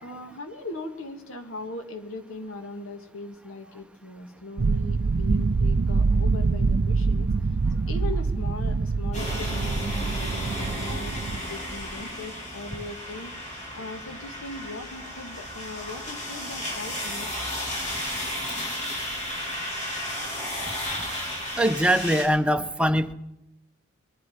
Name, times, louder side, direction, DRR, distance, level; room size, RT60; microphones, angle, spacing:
voice 1, 0.0-7.6 7.9-17.4, left 2 dB, 80° left, 6 dB, 1.7 m, -39 dB
sound 1, 4.6-11.4, right 4 dB, 50° right, 0.5 m, -25 dB
sound 2, 9.1-22.2, left 1 dB, 35° left, 5.1 m, -33 dB
voice 2, 21.6-23.1, equal, 5° right, 7 dB, 0.8 m, -22 dB
22.0 x 11.5 x 5.7 m, 0.92 s
head